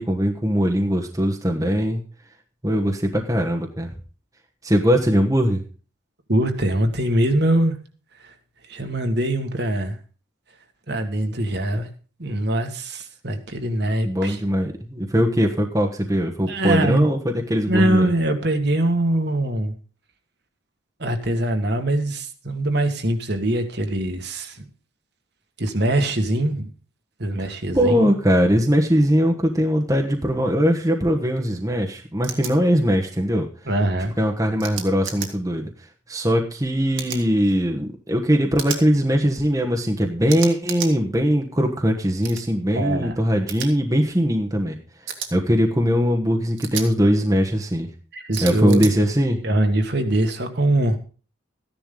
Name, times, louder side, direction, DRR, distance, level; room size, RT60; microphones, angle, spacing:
voice 1, 0.0-2.0 2.6-3.9 4.6-5.6 14.0-18.1 27.4-27.5 27.7-33.4 34.2-35.7 36.1-44.8 45.3-47.9 48.4-49.4, equal, 15° right, 2 dB, 1.2 m, -20 dB
voice 2, 6.3-7.7 8.2-8.3 8.7-10.0 10.9-11.9 12.2-14.4 16.5-17.1 17.7-19.7 21.0-24.7 25.6-26.7 27.2-28.1 33.7-34.1 42.8-43.2 48.1-48.9 49.4-51.0, right 1 dB, 55° right, 5 dB, 1.8 m, -22 dB
sound 1, 32.2-32.5 34.6-35.3 36.9-37.2 38.6-38.8 40.3-40.9 42.2-42.4 43.5-43.7 45.1-45.3 46.6-46.9 48.3-48.9, right 8 dB, 70° right, 2.3 m, -31 dB
14.5 x 10.5 x 3.9 m, 0.37 s
head